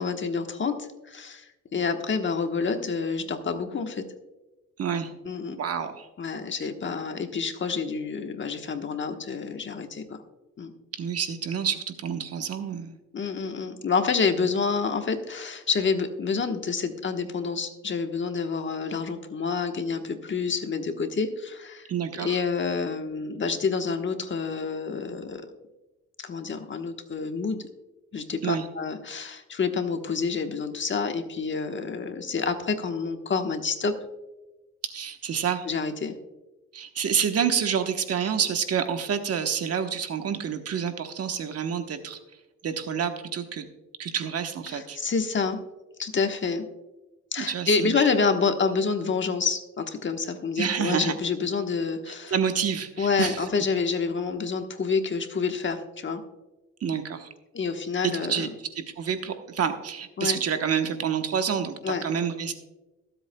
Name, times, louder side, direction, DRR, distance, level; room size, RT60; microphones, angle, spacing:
voice 1, 0.0-4.0 5.2-5.6 6.2-10.2 10.6-10.7 13.1-21.9 22.1-25.4 26.2-27.7 28.1-33.9 35.6-36.1 44.7-45.6 46.0-46.7 47.3-52.3 53.0-56.2 57.5-58.5 60.2-60.4 61.8-62.0, left 5 dB, 40° left, 6 dB, 1.2 m, -28 dB
voice 2, 4.8-5.1 5.6-6.1 10.9-13.0 21.9-22.4 28.4-28.7 34.8-35.7 36.7-42.2 42.6-43.7 44.0-45.0 47.4-48.0 50.6-51.1 52.1-53.5 56.8-57.3 58.0-58.5 58.7-62.5, right 7 dB, 55° right, 7 dB, 1.1 m, -28 dB
22.5 x 8.1 x 2.3 m, 1.1 s
cardioid pair, 90°, 30 cm